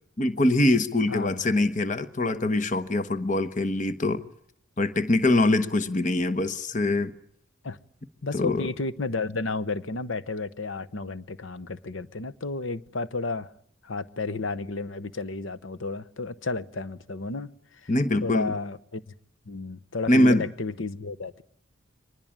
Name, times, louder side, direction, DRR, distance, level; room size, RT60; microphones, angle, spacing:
voice 1, 0.2-4.2 4.8-7.1 8.3-8.7 17.9-18.5 20.1-20.5, left 1 dB, 40° left, 1.1 m, -23 dB
voice 2, 1.1-1.5 7.6-7.8 8.2-13.5 13.8-17.5 17.8-17.9 18.2-19.0 19.5-21.4, left 3 dB, 75° left, 1.0 m, -32 dB
24.0 x 20.0 x 8.8 m
head